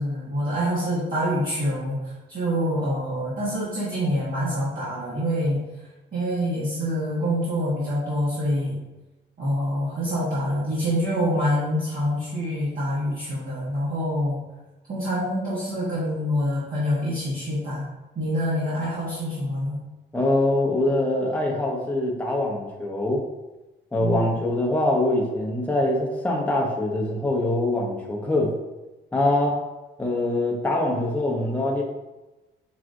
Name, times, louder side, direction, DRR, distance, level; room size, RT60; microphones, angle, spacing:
voice 1, 0.0-2.0 2.3-5.6 6.1-8.8 9.4-14.4 14.9-17.8 18.1-19.8 24.0-24.4, equal, 50° right, -8 dB, 1.2 m, -26 dB
voice 2, 20.1-23.2 23.9-28.5 29.1-29.6 30.0-31.8, left 1 dB, 10° left, -2 dB, 0.7 m, -23 dB
5.8 x 2.4 x 2.5 m, 1.1 s
cardioid pair, 90°, 20 cm